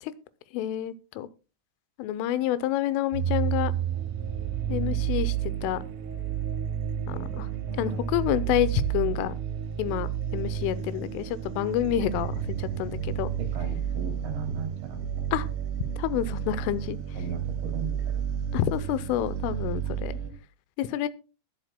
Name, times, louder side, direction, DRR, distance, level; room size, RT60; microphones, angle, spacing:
voice 1, 0.5-1.3 2.0-3.7 4.7-5.4 5.6-5.8 7.1-7.5 7.8-9.3 9.8-12.3 12.6-13.3 15.3-15.5 16.0-17.0 18.5-20.1 20.8-21.1, left 12 dB, 90° left, 15 dB, 3.3 m, -28 dB
sound 1, 3.1-20.3, right 9 dB, 85° right, 4.4 m, -31 dB
voice 2, 7.1-8.1 13.4-15.1 17.2-18.3, right 5 dB, 70° right, 3 dB, 5.0 m, -38 dB
20.5 x 7.8 x 2.2 m, 0.32 s
omnidirectional pair, 5.5 m